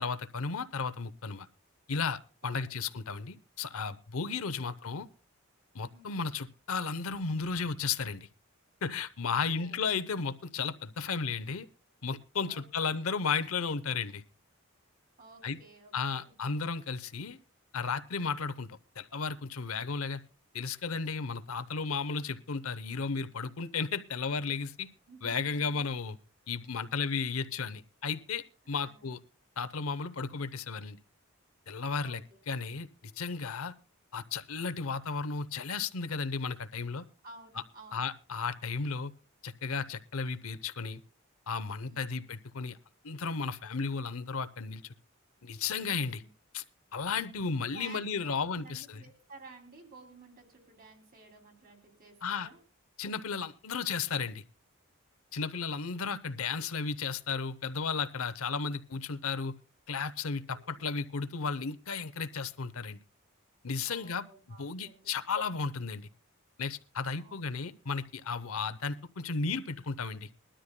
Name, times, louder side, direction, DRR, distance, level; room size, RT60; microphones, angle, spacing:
voice 1, 0.0-1.5 1.9-5.1 5.7-8.3 8.8-11.7 12.0-14.2 15.4-15.6 15.9-17.4 17.7-20.2 20.5-24.9 25.2-26.2 26.5-29.2 29.6-31.0 31.7-32.2 32.5-33.7 34.1-37.1 37.9-39.1 39.4-41.0 41.5-42.8 43.0-44.9 45.4-46.2 46.5-46.6 46.9-49.0 52.2-52.5 53.0-54.4 55.3-59.5 59.9-63.0 63.6-64.2 64.6-66.1 66.6-70.5, left 5 dB, 80° left, 12 dB, 0.7 m, -34 dB
voice 2, 2.4-2.8 4.5-4.7 5.9-6.2 9.3-9.8 12.5-13.0 15.2-16.3 25.1-25.8 28.7-29.1 32.0-32.4 37.2-38.0 41.8-42.1 45.9-46.3 47.7-52.6 60.5-60.9 63.8-65.1 67.1-67.4, right 3 dB, 45° right, 3 dB, 2.8 m, -54 dB
21.5 x 12.5 x 2.2 m, 0.34 s
head